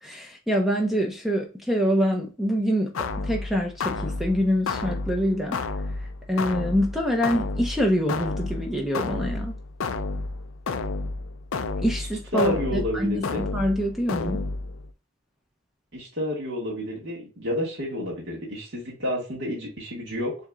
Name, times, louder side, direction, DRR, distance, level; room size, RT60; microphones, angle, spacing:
voice 1, 0.0-5.6 6.0-9.6 11.8-14.4, equal, ahead, 0.6 m, -25 dB
sound 1, 2.9-14.9, left 3 dB, 85° left, 0.5 m, -31 dB
voice 2, 12.3-13.4 15.9-20.4, left 1 dB, 55° right, 1.7 m, -30 dB
6.9 x 2.8 x 2.3 m
head